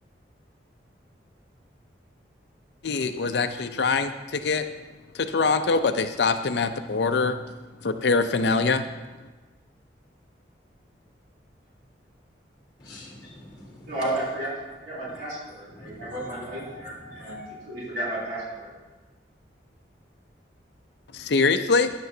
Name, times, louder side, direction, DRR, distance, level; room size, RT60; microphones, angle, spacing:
voice 1, 2.8-4.6 5.1-7.4 7.8-8.8 21.1-21.9, left 4 dB, 65° left, 8 dB, 0.5 m, -23 dB
voice 2, 12.8-14.0 15.1-15.2 15.7-17.5, left 1 dB, 20° left, -8 dB, 1.7 m, -43 dB
voice 3, 13.9-14.5 14.8-17.4 17.7-18.7, right 1 dB, 55° right, -8 dB, 3.5 m, -33 dB
13.5 x 9.6 x 2.8 m, 1.2 s
head